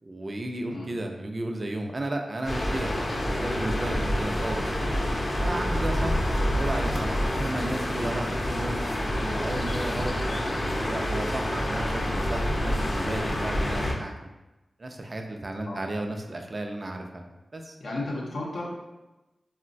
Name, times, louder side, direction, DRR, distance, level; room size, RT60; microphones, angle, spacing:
voice 1, 0.0-4.7 5.4-6.2 6.5-10.1 10.8-14.1 14.8-17.3 17.5-17.8, right 1 dB, 45° right, 3 dB, 0.3 m, -34 dB
sound 1, 2.4-13.9, equal, 45° left, 0.5 m, -27 dB
voice 2, 17.8-18.7, left 2 dB, 90° left, -5 dB, 0.6 m, -33 dB
3.7 x 2.1 x 2.5 m, 1.0 s
cardioid pair, 50°, 0 cm